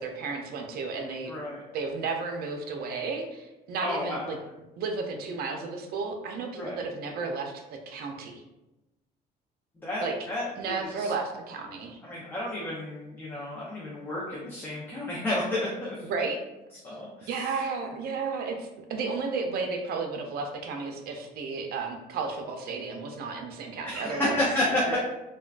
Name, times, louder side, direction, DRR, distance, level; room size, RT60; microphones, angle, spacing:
voice 1, 0.0-1.3 1.7-4.4 4.8-8.3 10.0-10.2 10.6-12.0 16.0-16.4 17.3-24.4 24.9-25.0, right 4 dB, 65° right, 4 dB, 0.5 m, -33 dB
voice 2, 1.3-1.6 3.8-4.3 6.5-6.8 9.8-11.1 12.0-16.0 16.8-17.3 23.8-25.0, left 1 dB, 10° left, -6 dB, 0.6 m, -31 dB
3.5 x 2.2 x 2.4 m, 0.98 s
cardioid pair, 110°, 17 cm